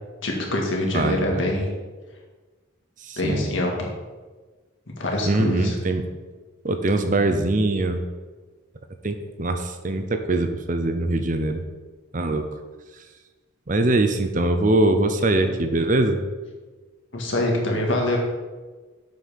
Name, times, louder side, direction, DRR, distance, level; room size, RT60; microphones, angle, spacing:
voice 1, 0.2-1.7 3.2-3.9 5.0-5.8 15.4-15.6 17.1-18.2, left 1 dB, 70° left, -1 dB, 2.0 m, -24 dB
voice 2, 0.9-1.5 3.0-3.5 5.3-6.0 6.6-8.1 9.0-11.6 12.1-12.5 13.7-16.2, right 2 dB, 40° right, 7 dB, 0.7 m, -22 dB
7.8 x 5.6 x 6.5 m, 1.3 s
head